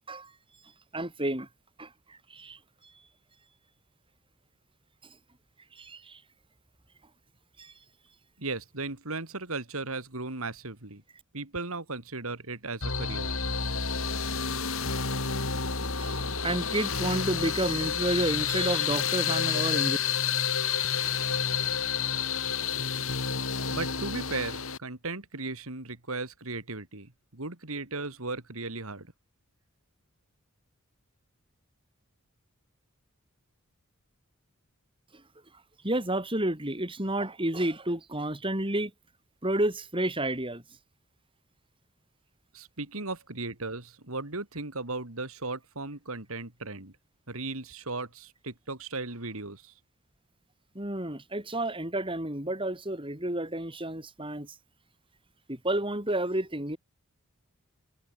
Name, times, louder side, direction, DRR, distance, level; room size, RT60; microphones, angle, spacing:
voice 1, 0.9-1.5 1.8-2.6 5.7-6.2 7.6-7.7 16.0-16.2 16.4-20.0 35.8-38.9 39.4-40.6 50.8-54.6 55.5-56.8, right 1 dB, 25° right, 5.7 m, -30 dB
voice 2, 8.4-11.0 11.3-13.3 23.7-29.1 42.5-46.9 47.3-49.7, right 3 dB, 70° right, 3.0 m, -36 dB
sound 1, 12.8-24.8, left 6 dB, 65° left, 4.6 m, -29 dB
head